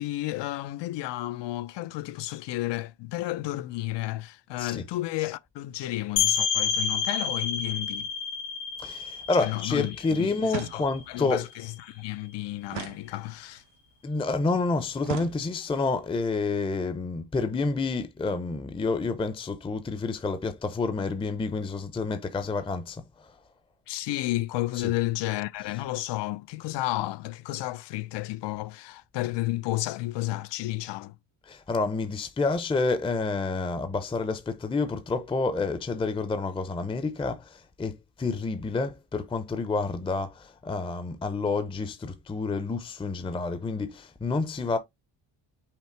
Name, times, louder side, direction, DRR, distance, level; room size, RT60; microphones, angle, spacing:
voice 1, 0.0-8.1 9.4-13.6 23.9-31.2, left 17 dB, 65° left, 0.5 m, -32 dB
sound 1, 6.2-11.6, left 7 dB, 90° left, 1.0 m, -29 dB
voice 2, 8.8-11.5 14.0-23.4 24.7-24.9 31.5-44.8, left 3 dB, 10° left, 0.5 m, -29 dB
sound 2, 10.5-11.2 12.7-13.7 15.0-15.9, right 16 dB, 75° right, 0.5 m, -39 dB
5.8 x 2.0 x 4.5 m
cardioid pair, 120°, 45 cm